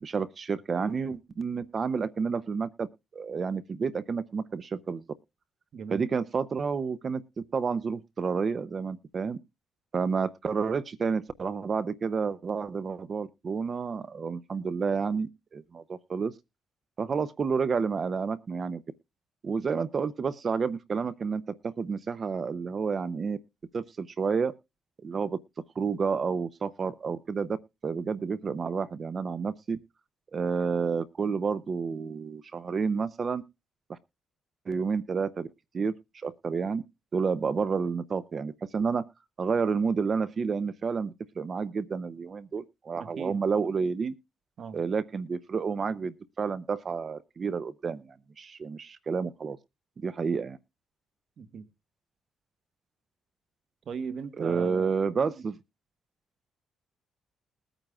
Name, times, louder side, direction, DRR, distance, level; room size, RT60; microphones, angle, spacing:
voice 1, 0.0-2.9 3.1-5.0 5.9-9.4 9.9-16.3 17.0-18.8 19.4-23.4 23.7-24.5 25.0-25.4 25.8-27.6 27.8-29.8 30.3-33.4 33.9-34.0 34.7-35.5 35.7-36.8 37.1-39.1 39.4-44.1 44.7-49.6 50.0-50.6 54.4-55.6, right 5 dB, 40° right, 0.6 m, -30 dB
voice 2, 5.7-6.1 43.0-43.4 44.6-44.8 51.4-51.6 53.8-54.9 55.2-55.3, right 6 dB, 60° right, 1.3 m, -38 dB
21.0 x 8.9 x 2.3 m
cardioid pair, 90°, 0 cm